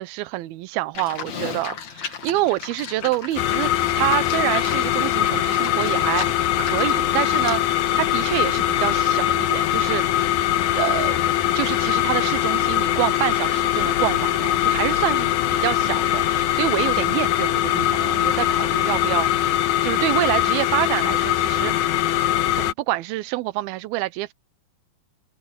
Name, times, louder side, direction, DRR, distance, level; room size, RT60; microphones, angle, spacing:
voice 1, 0.0-10.3 10.8-11.2 11.5-19.6 19.8-21.9 22.6-24.3, right 17 dB, 85° right, 2.7 m, -27 dB
Livestock farm animals working animals, 0.9-7.7, left 7 dB, 50° left, 3.0 m, -35 dB
sound 1, 3.4-22.7, left 12 dB, 70° left, 2.0 m, -22 dB
omnidirectional pair, 4.3 m